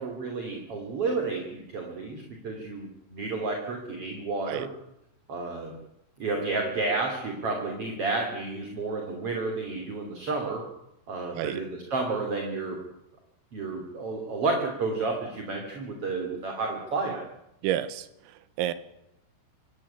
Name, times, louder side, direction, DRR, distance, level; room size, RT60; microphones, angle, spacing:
voice 1, 0.0-4.7 5.3-5.8 6.2-10.6 11.1-12.8 13.5-17.2, right 3 dB, 35° right, 3 dB, 3.0 m, -31 dB
voice 2, 17.6-18.7, right 12 dB, 85° right, 14 dB, 4.0 m, -30 dB
25.5 x 16.0 x 10.0 m, 0.85 s
omnidirectional pair, 6.0 m